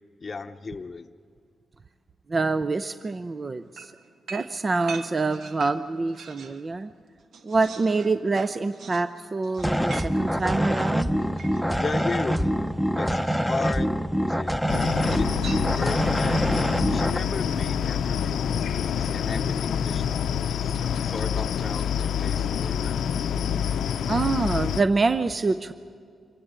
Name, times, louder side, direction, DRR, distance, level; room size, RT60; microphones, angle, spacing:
voice 1, 0.2-1.1 11.8-12.7 13.0-13.9 14.2-14.5 15.1-16.4 16.9-20.3 20.6-20.7 21.0-23.0, left 4 dB, 35° left, 4 dB, 0.8 m, -35 dB
voice 2, 2.3-3.9 4.3-6.9 7.4-11.1 24.1-25.7, right 3 dB, 35° right, 12 dB, 0.6 m, -26 dB
sound 1, 3.8-6.6 7.0-12.1 13.1-13.7 15.0-16.1, right 5 dB, 70° right, 1.4 m, -43 dB
sound 2, 9.6-17.2, equal, ahead, 0.9 m, -25 dB
sound 3, 14.7-24.8, left 8 dB, 80° left, 0.6 m, -27 dB
25.5 x 15.5 x 8.9 m, 2.2 s
cardioid pair, 80°, 0 cm